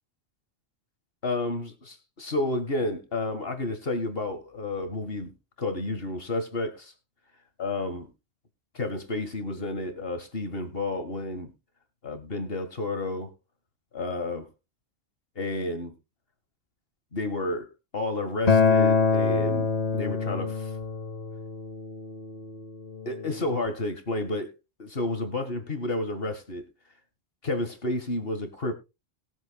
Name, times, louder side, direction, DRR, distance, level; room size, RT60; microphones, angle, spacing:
voice 1, 1.2-6.9 7.6-8.1 8.7-11.5 12.0-13.3 13.9-14.5 15.4-15.9 17.1-17.7 17.9-19.7 19.9-20.7 23.1-24.5 24.8-26.6 27.4-28.7, left 2 dB, 60° left, 8 dB, 2.0 m, -31 dB
Acoustic guitar, 18.5-23.7, left 5 dB, 40° left, 1.0 m, -25 dB
21.0 x 7.4 x 2.3 m, 0.26 s
omnidirectional pair, 1.1 m